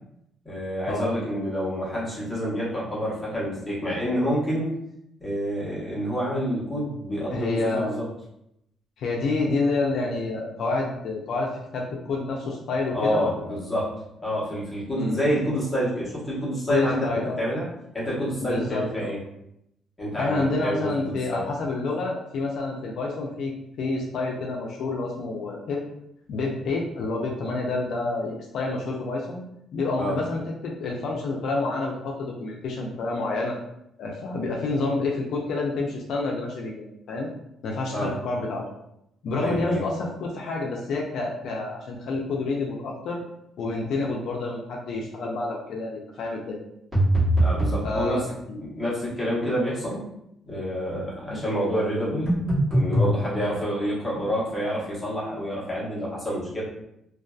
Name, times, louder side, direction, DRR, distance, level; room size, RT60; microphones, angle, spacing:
voice 1, 0.4-4.7 5.2-8.0 12.9-13.9 14.2-17.7 17.9-19.2 20.0-21.4 30.0-30.2 37.9-38.1 39.4-39.8 47.4-48.3 48.5-50.0 50.4-52.3 52.7-56.6, equal, 5° left, -8 dB, 0.8 m, -28 dB
voice 2, 7.3-7.9 9.0-13.6 14.9-15.3 16.7-17.4 18.4-19.1 20.2-25.8 26.3-29.4 29.7-33.6 34.0-37.3 37.6-38.6 39.2-43.2 43.6-46.6 47.8-48.6 51.3-51.4, left 3 dB, 60° left, -1 dB, 0.3 m, -28 dB
sound 1, 46.9-47.8 52.3-53.1, right 1 dB, 20° right, 1.0 m, -21 dB
2.5 x 2.2 x 2.2 m, 0.80 s
cardioid pair, 170°, 0 cm